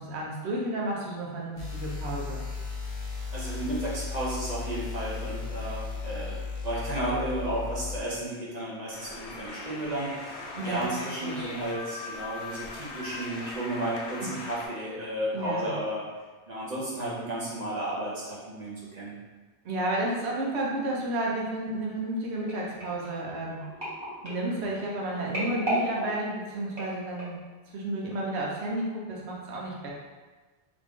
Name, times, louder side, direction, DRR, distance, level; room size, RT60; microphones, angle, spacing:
voice 1, 0.0-2.4 10.5-10.9 11.2-11.5 14.2-14.3 15.3-15.7 19.6-23.6 24.2-27.4 27.7-29.9, right 1 dB, 70° right, -3 dB, 1.0 m, -32 dB
sound 1, 1.6-8.0, left 4 dB, 40° left, 0.7 m, -35 dB
voice 2, 3.3-16.1 16.5-19.1, right 1 dB, 40° right, -7 dB, 0.8 m, -33 dB
sound 2, 8.9-14.7, left 3 dB, 80° left, 0.9 m, -40 dB
sound 3, 22.5-27.5 28.1-28.3 28.6-28.7, equal, 25° right, 1.1 m, -35 dB
3.0 x 2.5 x 3.5 m, 1.3 s
omnidirectional pair, 1.2 m